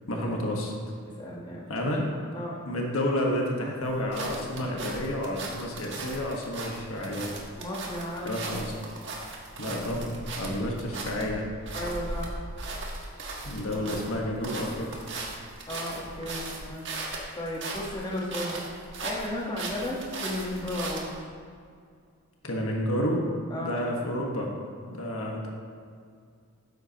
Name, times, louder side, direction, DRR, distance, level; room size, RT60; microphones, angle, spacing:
voice 1, 0.1-0.9 1.7-2.1 2.7-7.3 8.2-8.7 9.6-11.5 13.4-15.1 22.4-23.3 23.6-24.5 24.9-25.5, left 1 dB, 65° left, -1 dB, 1.5 m, -30 dB
voice 2, 1.2-1.7 2.3-2.6 7.6-8.4 11.7-12.4 13.7-14.0 15.7-16.8 17.3-18.6 19.0-21.1 23.5-23.8, left 1 dB, 20° left, -4 dB, 1.4 m, -34 dB
sound 1, 3.8-21.2, right 2 dB, 55° right, 1.5 m, -38 dB
12.5 x 9.5 x 3.0 m, 2.2 s
head